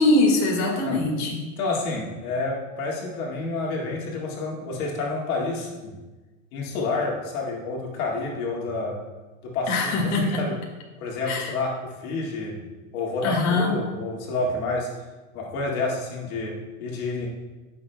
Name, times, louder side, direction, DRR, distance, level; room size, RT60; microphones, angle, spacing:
voice 1, 0.0-1.5 9.7-10.4 11.3-11.5 13.2-13.8, left 2 dB, 40° left, 0 dB, 1.9 m, -22 dB
voice 2, 1.6-6.0 6.5-9.0 9.4-9.9 10.2-10.5 11.0-12.6 12.9-14.9 15.3-17.3, left 3 dB, 75° left, -2 dB, 2.0 m, -29 dB
14.5 x 6.2 x 2.2 m, 1.2 s
supercardioid pair, 115°, 43 cm